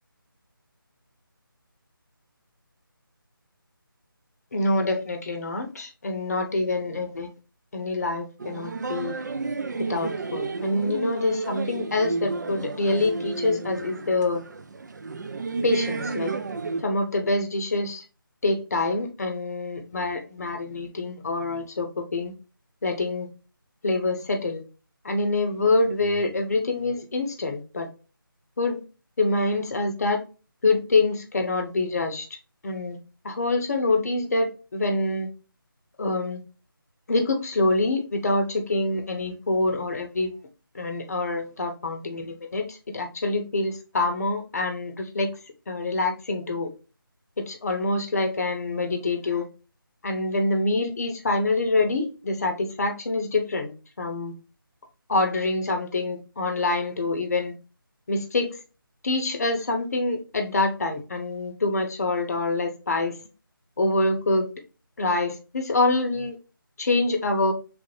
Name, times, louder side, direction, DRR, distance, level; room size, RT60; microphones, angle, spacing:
voice 1, 4.5-7.3 7.7-9.2 9.8-14.4 15.6-16.3 16.8-18.0 18.4-22.3 22.8-23.3 23.8-24.6 25.0-27.9 28.6-28.8 29.2-30.2 30.6-32.3 32.6-33.0 33.2-35.3 36.0-36.4 37.1-40.3 40.7-45.3 45.7-46.7 47.4-49.5 50.0-54.3 55.1-57.5 58.1-58.6 59.0-63.2 63.8-64.5 65.0-66.4 66.8-67.5, left 2 dB, 45° left, 0.7 m, -26 dB
sound 1, 8.4-16.8, right 3 dB, 50° right, 0.4 m, -32 dB
3.2 x 2.6 x 3.1 m
figure-of-eight pair, 160°, 12 cm